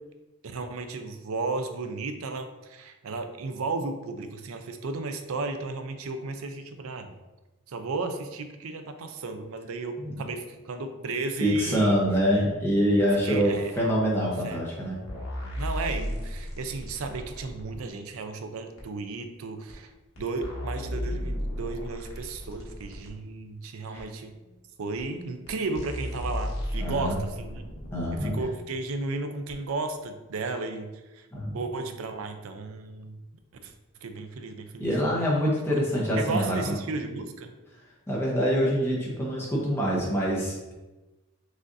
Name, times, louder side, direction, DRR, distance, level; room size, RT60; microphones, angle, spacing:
voice 1, 0.4-7.1 7.7-12.0 12.9-13.9 14.4-14.6 15.6-19.9 20.2-24.3 24.8-27.6 28.2-31.3 31.5-33.2 33.6-33.7 34.0-34.9 36.2-37.5, right 3 dB, 80° right, 7 dB, 0.4 m, -34 dB
voice 2, 11.4-15.0 23.9-24.1 26.8-27.2 27.9-28.3 31.3-31.6 34.8-36.8 37.7-40.6, equal, 10° left, -5 dB, 0.9 m, -25 dB
sound 1, 15.1-17.8 18.8-18.9 19.7-19.8 20.2-23.1 24.0-24.1 25.0-25.1 25.5-25.6 25.7-28.5 29.5-29.6, left 1 dB, 75° left, 1.1 m, -34 dB
6.1 x 2.5 x 2.6 m, 1.1 s
head